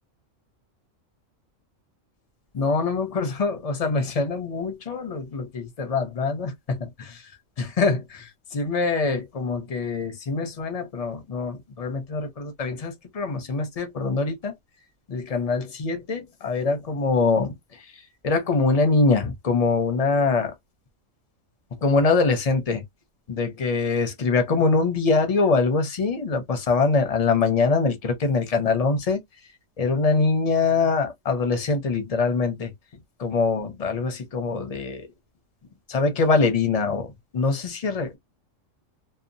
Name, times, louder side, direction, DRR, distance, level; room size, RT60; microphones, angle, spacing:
voice 1, 2.5-6.5 7.6-8.0 8.5-14.5 15.1-17.5 18.2-20.5 21.8-22.8 23.3-29.2 29.8-32.7 33.2-35.0 35.9-37.1 37.3-38.2, left 4 dB, 40° left, 0.6 m, -23 dB
2.7 x 2.2 x 2.6 m
omnidirectional pair, 1.4 m